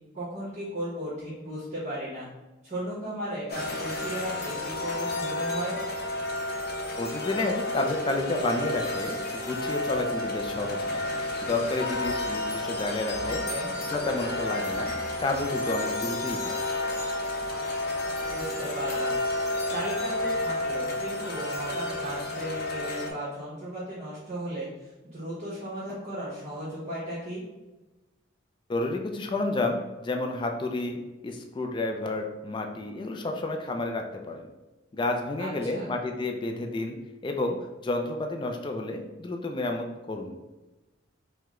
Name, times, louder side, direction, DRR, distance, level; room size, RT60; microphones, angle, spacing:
voice 1, 0.1-2.3 2.6-5.8 13.2-13.7 18.2-19.2 19.7-27.4 35.4-35.9, equal, 40° right, -10 dB, 1.2 m, -35 dB
sound 1, 3.5-23.1, left 2 dB, 50° left, 0.7 m, -31 dB
voice 2, 7.0-11.0 11.4-13.4 13.8-14.9 15.2-16.6 28.7-34.5 34.9-37.0 37.2-37.6 37.8-40.3, left 2 dB, 25° left, 3 dB, 0.3 m, -30 dB
4.6 x 2.2 x 3.6 m, 1.1 s
head